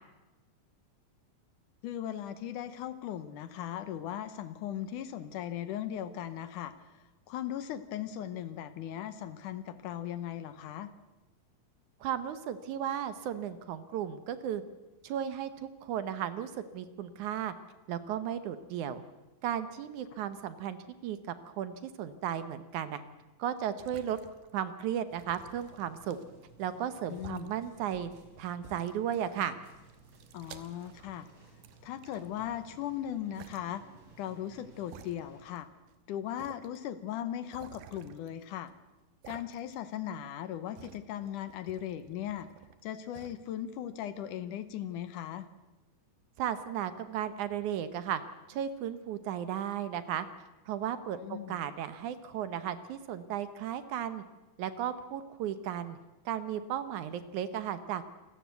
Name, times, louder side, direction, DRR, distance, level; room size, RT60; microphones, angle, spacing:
voice 1, 1.8-10.9 27.1-27.5 30.3-31.3 31.8-33.8 34.2-35.7 36.1-38.7 39.3-42.5 42.8-45.5 51.2-51.6, left 11 dB, 75° left, 13 dB, 2.3 m, -38 dB
voice 2, 12.0-14.6 15.0-17.5 17.9-19.0 19.4-20.8 21.0-23.0 23.4-24.2 24.5-26.2 26.6-28.1 28.4-29.6 46.4-48.2 48.5-50.3 50.7-54.2 54.6-56.0 56.3-58.0, right 9 dB, 70° right, 12 dB, 2.1 m, -35 dB
sound 1, 23.6-24.7 25.1-26.5 27.1-27.5 28.2-28.3 28.6-29.4 29.7-31.3 31.6-32.7 33.3-33.6 34.3-34.4 34.9-35.6 35.9-36.0 36.4-36.8 37.5-38.7 39.2-39.9 40.2-42.8 43.1-43.4, right 9 dB, 85° right, 2.9 m, -52 dB
sound 2, 25.1-35.5, right 3 dB, 40° right, 4.9 m, -58 dB
27.5 x 14.0 x 8.2 m, 1.1 s
omnidirectional pair, 4.0 m